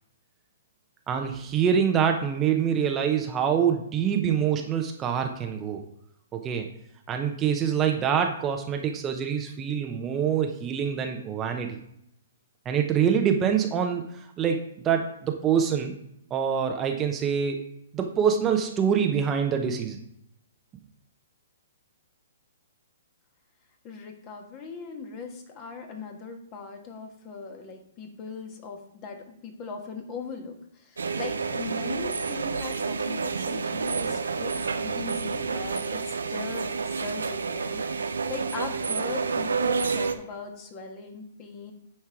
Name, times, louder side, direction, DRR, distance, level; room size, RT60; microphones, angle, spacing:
voice 1, 1.1-5.8 6.3-6.7 7.1-11.8 12.6-15.9 16.3-17.6 17.9-20.0, right 7 dB, 20° right, 4 dB, 0.8 m, -25 dB
voice 2, 23.8-29.2 29.4-41.7, left 4 dB, 30° left, 3 dB, 1.6 m, -39 dB
sound 1, 31.0-40.2, right 5 dB, 85° right, 0.7 m, -29 dB
9.5 x 4.4 x 4.8 m, 0.75 s
hypercardioid pair, 130°, 0 cm